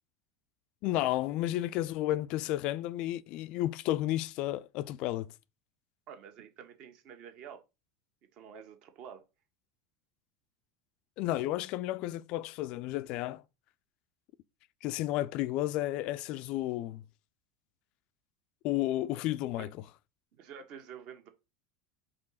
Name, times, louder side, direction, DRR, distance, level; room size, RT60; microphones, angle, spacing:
voice 1, 0.8-5.3 11.2-13.4 14.8-17.0 18.6-19.7, left 15 dB, 50° left, 0.4 m, -32 dB
voice 2, 6.1-7.6 8.3-9.3 19.6-19.7 20.3-21.3, right 7 dB, 45° right, 1.5 m, -48 dB
5.3 x 3.8 x 5.7 m
figure-of-eight pair, 75°, 2 cm